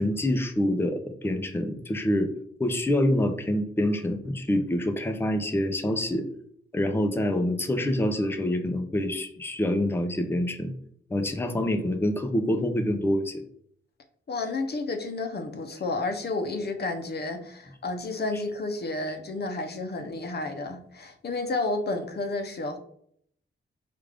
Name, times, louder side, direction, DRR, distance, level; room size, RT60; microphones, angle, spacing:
voice 1, 0.0-2.3 2.6-6.3 6.7-10.7 11.1-13.4, left 1 dB, 10° left, 6 dB, 0.5 m, -26 dB
voice 2, 14.3-22.8, left 2 dB, 50° left, 6 dB, 0.7 m, -31 dB
4.9 x 2.4 x 3.4 m, 0.65 s
cardioid pair, 90°, 21 cm